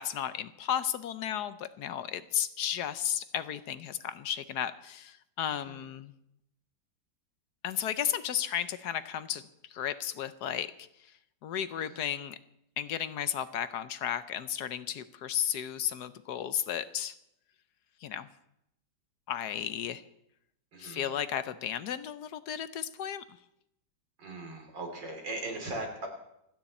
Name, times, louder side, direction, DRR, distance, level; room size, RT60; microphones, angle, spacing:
voice 1, 0.0-6.1 7.6-9.4 9.7-10.9 11.4-12.4 12.8-17.1 18.0-18.3 19.3-20.0 20.8-23.4, left 9 dB, 65° left, 13 dB, 1.2 m, -34 dB
voice 2, 5.5-5.9 11.7-12.1 20.7-21.1 24.2-26.1, right 2 dB, 75° right, 2 dB, 3.8 m, -39 dB
27.5 x 9.7 x 4.3 m, 0.79 s
omnidirectional pair, 2.0 m